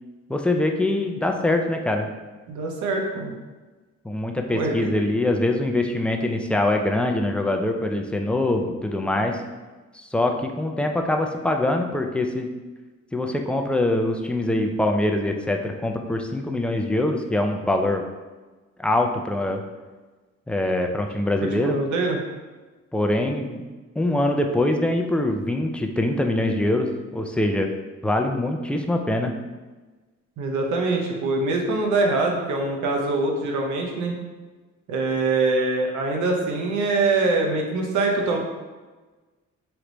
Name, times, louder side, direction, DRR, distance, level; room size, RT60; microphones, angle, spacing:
voice 1, 0.3-2.1 4.0-9.4 9.9-12.5 13.1-18.0 18.8-19.6 20.5-21.8 22.9-23.6 24.0-27.7 28.0-29.3, left 1 dB, 5° left, 3 dB, 0.4 m, -23 dB
voice 2, 2.5-3.3 4.5-5.1 21.6-22.2 30.4-34.1 34.9-38.4, right 3 dB, 75° right, 1 dB, 0.8 m, -24 dB
3.3 x 3.0 x 3.9 m, 1.3 s
cardioid pair, 90°, 30 cm